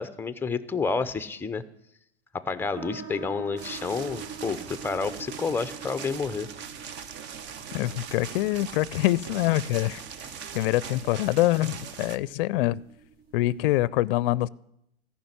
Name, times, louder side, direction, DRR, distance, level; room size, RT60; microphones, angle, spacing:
voice 1, 0.0-1.6 2.3-6.5, left 4 dB, 5° left, 11 dB, 0.6 m, -30 dB
sound 1, 2.7-13.8, right 6 dB, 60° right, 3.6 m, -46 dB
sound 2, 3.6-12.2, right 7 dB, 35° right, 0.8 m, -41 dB
voice 2, 7.7-10.0 10.5-12.8 13.3-14.5, left 16 dB, 60° left, 22 dB, 0.5 m, -25 dB
14.0 x 5.9 x 9.7 m, 0.78 s
hypercardioid pair, 110°, 33 cm